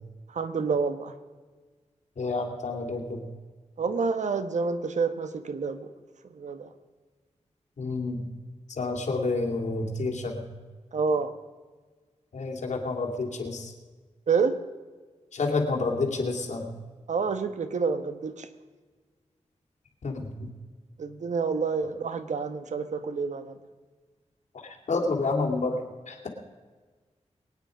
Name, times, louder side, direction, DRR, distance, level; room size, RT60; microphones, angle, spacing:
voice 1, 0.3-1.1 3.8-5.9 6.2-6.7 10.9-11.3 14.3-14.6 17.1-18.5 21.0-23.6, right 5 dB, 80° right, 10 dB, 1.2 m, -28 dB
voice 2, 2.2-3.2 7.8-8.3 8.7-10.4 12.3-13.7 15.3-16.7 20.0-20.5 24.9-25.8 26.1-26.3, left 3 dB, 80° left, 1 dB, 2.7 m, -29 dB
23.0 x 9.4 x 5.0 m, 1.4 s
wide cardioid pair, 100°, 12 cm